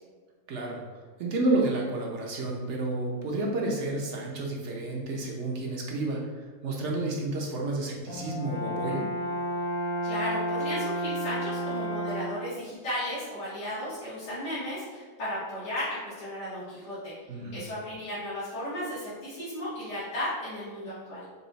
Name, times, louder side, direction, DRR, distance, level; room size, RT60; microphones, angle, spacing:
voice 1, 0.5-0.8 1.2-6.3 6.6-9.1 17.3-17.6, right 2 dB, 55° right, -1 dB, 0.9 m, -30 dB
Brass instrument, 8.1-12.5, equal, 55° left, 1.0 m, -31 dB
voice 2, 10.0-17.1 17.5-21.2, left 1 dB, 90° left, -13 dB, 2.1 m, -35 dB
5.4 x 2.4 x 3.9 m, 1.4 s
omnidirectional pair, 1.7 m